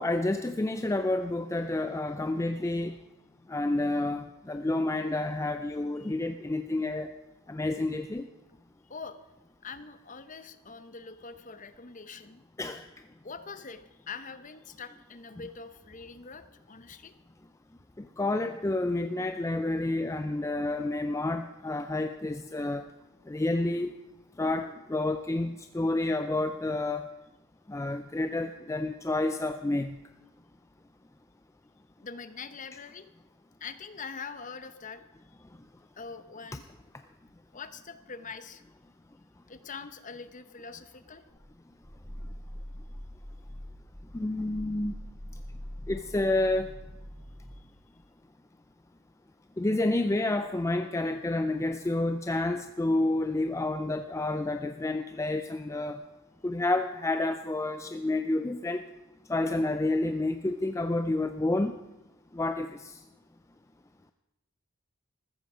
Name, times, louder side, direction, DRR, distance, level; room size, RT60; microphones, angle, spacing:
voice 1, 0.0-2.9 3.5-7.1 7.5-8.3 12.6-12.8 18.0-22.8 23.3-23.9 24.4-27.1 27.7-29.9 44.1-44.9 45.9-46.7 49.6-56.0 56.4-58.8 59.3-61.7 62.3-63.0, left 2 dB, 15° left, 8 dB, 0.4 m, -29 dB
voice 2, 8.8-9.2 9.6-12.4 13.2-17.1 32.0-33.1 33.6-35.0 36.0-36.6 37.5-38.6 39.5-41.2, left 5 dB, 35° left, 11 dB, 0.8 m, -43 dB
Growling, 41.3-47.6, equal, 10° right, 6.1 m, -43 dB
14.5 x 13.5 x 5.0 m, 0.98 s
head